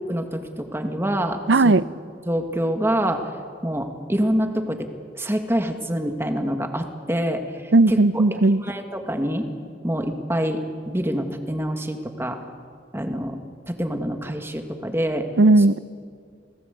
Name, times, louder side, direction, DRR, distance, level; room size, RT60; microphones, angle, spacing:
voice 1, 0.1-1.4 1.6-1.7 2.3-3.3 3.6-8.0 8.6-9.5 9.8-12.4 12.9-13.4 13.7-15.3, equal, 15° right, 1.9 m, -26 dB
voice 2, 1.5-1.8 7.7-8.6 15.4-15.8, right 2 dB, 80° right, 0.6 m, -16 dB
29.5 x 18.0 x 8.3 m
head